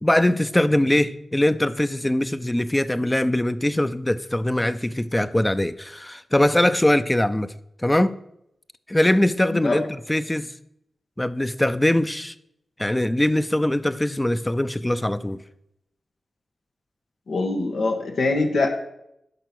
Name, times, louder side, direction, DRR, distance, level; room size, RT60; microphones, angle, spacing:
voice 1, 0.0-7.5 7.8-8.1 8.9-10.5 11.2-12.3 12.8-15.4, left 1 dB, 15° left, 13 dB, 0.6 m, -22 dB
voice 2, 9.5-9.8 17.3-18.7, left 3 dB, 80° left, 3 dB, 1.5 m, -23 dB
11.0 x 5.8 x 6.2 m, 0.79 s
cardioid pair, 45°, 0 cm